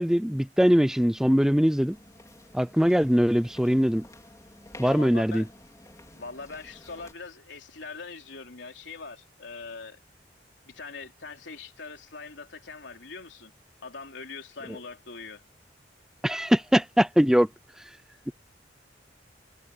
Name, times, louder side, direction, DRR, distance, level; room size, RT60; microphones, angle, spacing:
voice 1, 0.0-2.0 2.5-4.1 4.8-5.4 16.2-17.5, equal, 5° right, 0.5 m, -22 dB
sound 1, 1.9-7.1, left 1 dB, 20° left, 4.0 m, -51 dB
voice 2, 4.8-5.5 6.1-10.0 10.6-13.5 13.8-15.4, left 4 dB, 85° left, 3.4 m, -42 dB
head